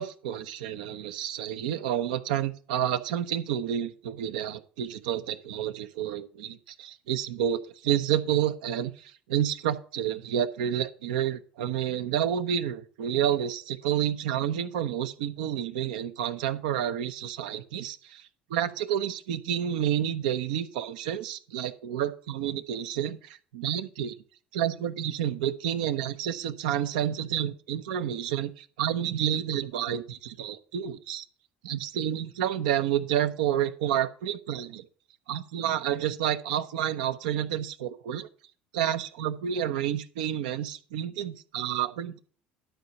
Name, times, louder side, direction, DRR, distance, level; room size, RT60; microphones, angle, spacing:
voice 1, 0.0-24.1 24.5-31.3 31.6-34.8 35.3-38.3 38.7-42.2, right 10 dB, 75° right, 10 dB, 0.8 m, -29 dB
11.5 x 4.8 x 6.6 m, 0.42 s
hypercardioid pair, 65°, 5 cm